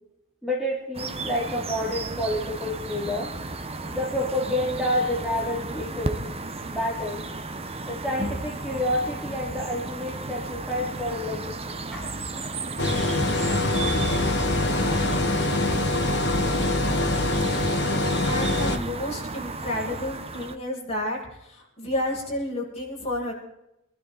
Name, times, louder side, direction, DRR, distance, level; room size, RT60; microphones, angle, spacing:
voice 1, 0.4-3.3 3.9-6.2 6.7-7.2 7.8-12.1, left 1 dB, 5° right, -3 dB, 2.9 m, -29 dB
sound 1, 0.9-20.6, right 3 dB, 30° right, 1.1 m, -34 dB
sound 2, 12.8-18.8, left 2 dB, 55° left, 1.9 m, -24 dB
voice 2, 18.3-23.3, left 1 dB, 30° left, -4 dB, 7.7 m, -31 dB
27.0 x 12.0 x 4.2 m, 0.86 s
head